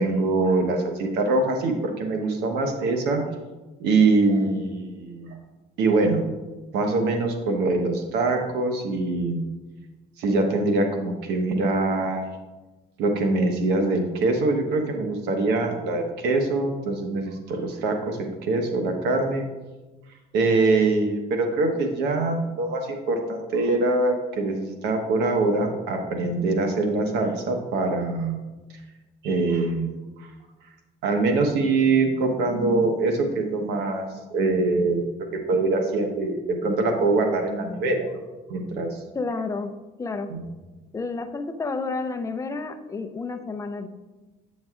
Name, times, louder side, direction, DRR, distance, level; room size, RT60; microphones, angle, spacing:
voice 1, 0.0-3.2 3.8-5.4 5.8-6.3 6.7-9.4 10.2-12.2 13.0-19.4 20.3-28.4 29.2-30.3 31.0-34.1 34.3-35.0 35.3-38.1 38.5-39.0 40.3-40.4, right 3 dB, 85° right, 4 dB, 1.0 m, -23 dB
voice 2, 39.1-40.3 40.9-43.9, left 3 dB, 20° left, 6 dB, 0.5 m, -30 dB
8.7 x 6.2 x 2.4 m, 1.2 s
cardioid pair, 110°, 17 cm